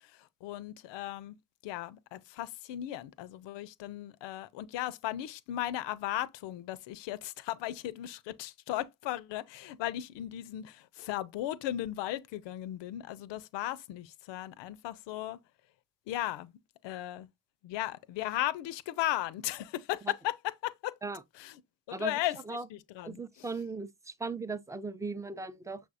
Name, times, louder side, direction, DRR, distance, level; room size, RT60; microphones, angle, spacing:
voice 1, 0.4-1.4 1.6-15.4 16.1-16.5 16.8-17.3 17.6-20.9 21.4-21.6 21.9-22.4 22.7-23.2, left 14 dB, 65° left, 0.6 m, -36 dB
voice 2, 23.0-25.8, right 4 dB, 5° right, 0.4 m, -38 dB
6.2 x 3.4 x 2.5 m
hypercardioid pair, 40°, 47 cm